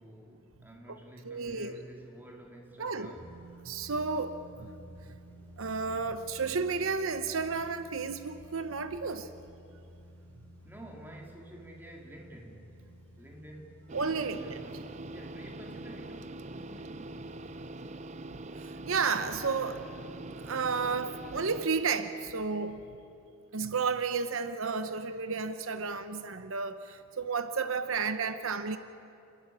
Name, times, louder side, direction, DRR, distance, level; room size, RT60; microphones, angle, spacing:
voice 1, 0.0-3.3 10.6-12.8 13.2-13.8 14.2-17.2, right 1 dB, 10° right, 0 dB, 2.8 m, -50 dB
voice 2, 1.2-1.7 2.8-3.1 3.6-4.7 5.0-5.2 5.6-9.3 13.9-14.6 18.3-19.9 20.4-22.8 23.5-28.8, right 5 dB, 70° right, 10 dB, 0.8 m, -32 dB
sound 1, 3.1-17.7, right 1 dB, 10° left, 4.2 m, -53 dB
sound 2, 13.9-21.7, right 2 dB, 35° right, 0.6 m, -43 dB
29.0 x 12.5 x 9.7 m, 2.7 s
head